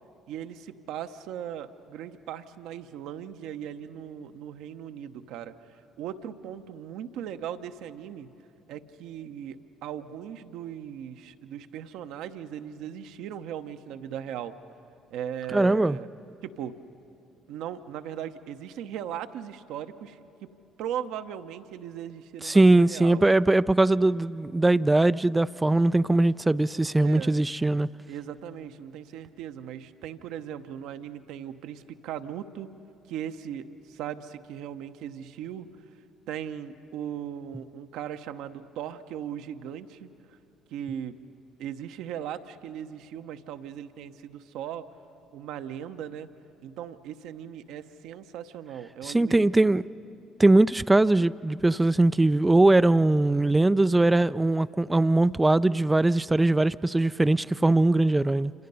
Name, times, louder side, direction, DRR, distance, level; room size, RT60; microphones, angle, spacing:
voice 1, 0.3-8.3 8.7-14.6 15.1-16.1 16.4-16.8 17.5-20.2 20.8-23.3 26.7-27.4 28.1-32.7 33.1-35.8 36.3-40.4 40.7-41.2 41.6-44.8 45.3-46.3 46.6-49.8, right 9 dB, 70° right, 0.9 m, -38 dB
voice 2, 15.5-16.0 22.4-27.9 49.0-49.9 50.4-58.5, right 2 dB, 15° right, 0.4 m, -21 dB
28.0 x 26.0 x 5.6 m
hypercardioid pair, 55°, 0 cm